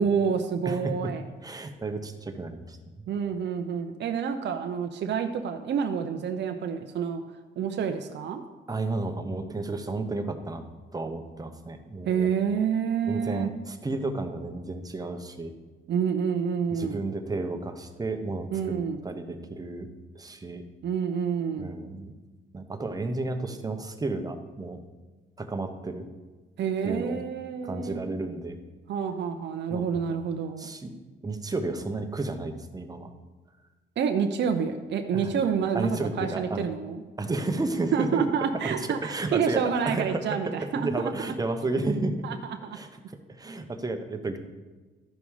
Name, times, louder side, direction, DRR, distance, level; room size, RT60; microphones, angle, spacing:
voice 1, 0.0-1.2 3.1-7.2 7.6-8.4 12.1-13.5 15.9-17.1 18.5-19.0 20.8-21.8 26.6-28.0 28.9-30.7 34.0-37.0 37.9-41.1 42.2-42.8, right 7 dB, 60° right, 6 dB, 0.7 m, -28 dB
voice 2, 0.6-1.1 1.4-2.8 8.7-10.6 10.9-12.3 13.1-15.5 16.7-18.8 19.0-19.9 20.1-20.6 21.6-22.1 22.5-24.8 25.4-26.1 26.8-27.2 27.6-28.6 29.7-30.0 30.6-30.9 31.2-33.1 35.1-35.4 35.7-36.7 37.2-38.2 39.0-42.2 42.7-42.9 43.3-44.4, right 2 dB, 20° right, 6 dB, 1.0 m, -32 dB
12.5 x 5.3 x 4.8 m, 1.3 s
cardioid pair, 90°, 20 cm